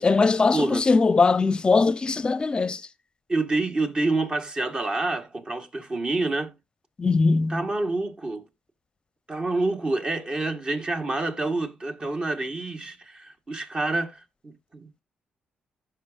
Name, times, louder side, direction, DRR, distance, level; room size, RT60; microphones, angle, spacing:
voice 1, 0.0-2.8 7.0-7.6, left 4 dB, 30° left, 0.7 m, -21 dB
voice 2, 0.5-0.9 3.3-6.5 7.5-8.4 9.3-15.0, right 2 dB, 30° right, 1.7 m, -28 dB
15.0 x 6.1 x 2.5 m
cardioid pair, 105°, 3 cm